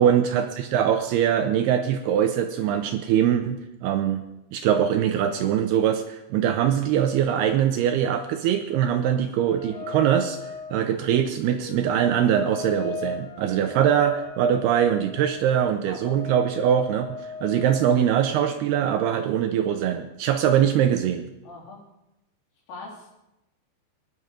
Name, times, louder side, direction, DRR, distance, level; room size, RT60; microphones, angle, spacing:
voice 1, 0.0-4.2 4.5-10.4 10.7-17.1 17.4-21.2, right 9 dB, 80° right, 7 dB, 2.4 m, -22 dB
sound 1, 9.5-17.9, left 5 dB, 55° left, 3.6 m, -38 dB
voice 2, 21.4-21.8 22.7-23.2, left 2 dB, 80° left, -4 dB, 6.3 m, -40 dB
19.0 x 11.0 x 5.2 m, 0.92 s
omnidirectional pair, 5.3 m